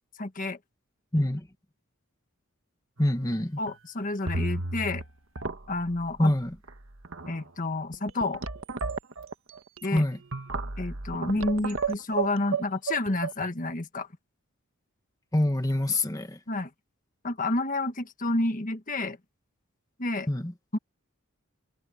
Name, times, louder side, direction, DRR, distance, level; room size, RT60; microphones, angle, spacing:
voice 1, 0.2-0.6 3.6-5.0 5.7-6.3 7.3-8.4 9.8-10.0 10.8-14.1 16.5-16.7 17.2-19.2 20.0-20.3 20.7-20.8, left 2 dB, 40° left, 1.5 m, -29 dB
voice 2, 1.1-1.5 3.0-3.6 6.2-6.5 9.9-10.2 15.3-16.4 20.3-20.5, left 1 dB, 15° left, 1.4 m, -25 dB
sound 1, 3.0-3.3 3.7-3.8 4.3-5.1 5.3-5.9 6.7-6.8 7.0-7.4 7.9-13.5, right 4 dB, 65° right, 1.6 m, -32 dB
head